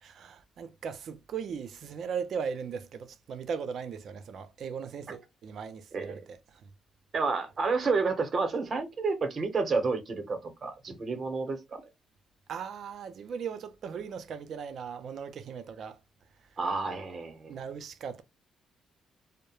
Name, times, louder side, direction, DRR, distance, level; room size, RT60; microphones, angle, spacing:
voice 1, 0.0-6.7 12.5-16.0 17.5-18.2, right 6 dB, 65° right, 0.4 m, -38 dB
voice 2, 7.1-11.8 16.6-17.6, right 4 dB, 45° right, 0.8 m, -30 dB
2.3 x 2.0 x 3.0 m
cardioid pair, 90°, 0 cm